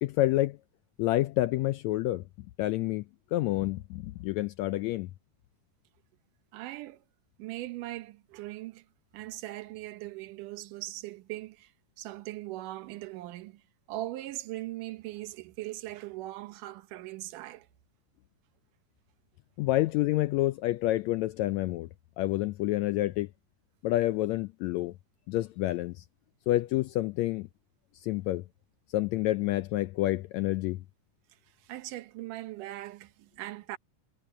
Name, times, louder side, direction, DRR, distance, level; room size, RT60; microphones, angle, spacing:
voice 1, 0.0-0.6 1.0-2.3 2.6-3.0 3.3-5.1 19.6-21.9 22.2-23.3 23.8-24.9 25.3-26.0 26.5-27.5 27.9-28.4 28.9-30.8, left 16 dB, 85° left, 1.6 m, -28 dB
voice 2, 6.5-7.0 7.4-8.9 9.1-11.7 12.0-13.6 13.9-17.7 31.5-33.8, right 16 dB, 85° right, 2.5 m, -40 dB
omnidirectional pair, 3.6 m